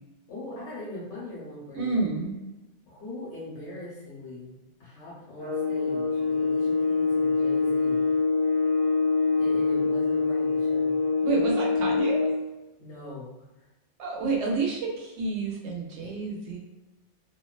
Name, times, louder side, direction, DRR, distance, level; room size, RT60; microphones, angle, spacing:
voice 1, 0.3-2.0 2.9-8.0 9.4-11.0 12.8-13.7 16.0-16.2, left 1 dB, 80° left, -6 dB, 1.0 m, -41 dB
voice 2, 1.8-2.4 11.2-12.2 14.0-16.6, right 4 dB, 75° right, -1 dB, 0.9 m, -29 dB
sound 1, 5.4-12.4, left 4 dB, 25° left, 0.6 m, -25 dB
2.5 x 2.1 x 2.3 m, 1.0 s
omnidirectional pair, 1.2 m